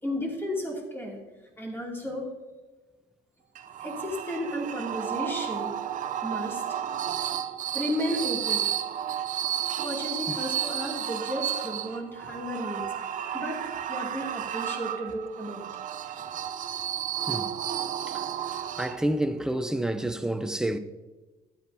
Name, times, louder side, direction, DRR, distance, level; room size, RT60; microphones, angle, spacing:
voice 1, 0.0-1.2 1.6-2.3 3.8-5.7 6.2-6.8 7.7-8.7 9.8-12.9 13.3-15.7, equal, 15° left, 2.6 m, -33 dB
sound 1, 3.5-19.3, right 10 dB, 50° right, 0.6 m, -32 dB
voice 2, 18.8-20.8, right 1 dB, 5° right, 0.5 m, -28 dB
13.5 x 9.0 x 2.8 m
cardioid pair, 110°, 17 cm